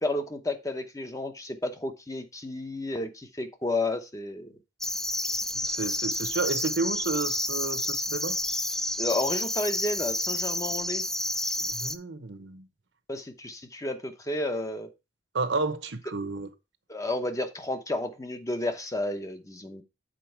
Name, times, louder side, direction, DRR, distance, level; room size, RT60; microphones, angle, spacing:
voice 1, 0.0-4.5 9.0-11.0 13.1-14.9 16.9-19.8, left 2 dB, 20° left, 0.8 m, -31 dB
sound 1, 4.8-12.0, left 1 dB, ahead, 0.3 m, -30 dB
voice 2, 5.6-8.4 11.6-12.7 15.3-16.5, right 3 dB, 75° right, 1.0 m, -31 dB
7.5 x 4.4 x 4.4 m
head